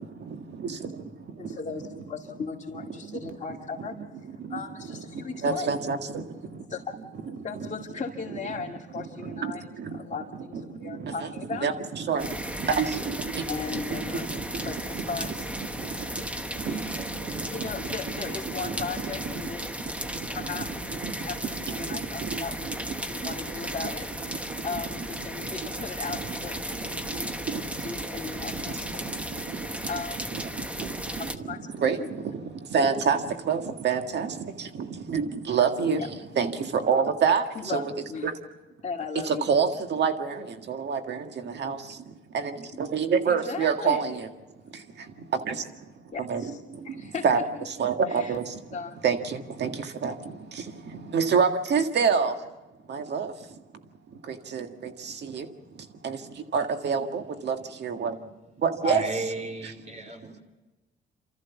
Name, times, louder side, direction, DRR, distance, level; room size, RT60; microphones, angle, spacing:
voice 1, 0.2-1.6 2.9-3.3 3.8-3.9 4.2-6.7 7.6-7.7 8.5-15.3 15.6-17.7 18.2-23.7 24.3-25.8 26.1-26.4 26.7-29.9 30.2-37.9 38.2-38.3 39.2-44.3 44.6-47.4 47.7-52.5 52.9-59.0 59.6-60.4, right 6 dB, 60° right, 1.8 m, -30 dB
voice 2, 1.4-4.0 4.5-5.7 6.7-7.0 7.4-9.7 9.9-11.7 13.5-14.3 14.6-15.5 16.7-16.8 17.4-19.8 20.3-20.7 21.2-22.7 23.1-27.3 27.8-29.1 29.9-30.2 31.5-31.7 32.0-32.1 35.9-36.2 37.5-37.8 38.1-38.3 38.8-39.5 43.2-44.0 46.1-47.4 48.1-48.4 48.7-49.0, left 5 dB, 35° left, 2.5 m, -37 dB
sound 1, 12.2-31.4, equal, 5° right, 1.1 m, -35 dB
voice 3, 58.8-60.4, equal, 35° right, 5.0 m, -33 dB
28.0 x 14.0 x 7.2 m
cardioid pair, 90°, 20 cm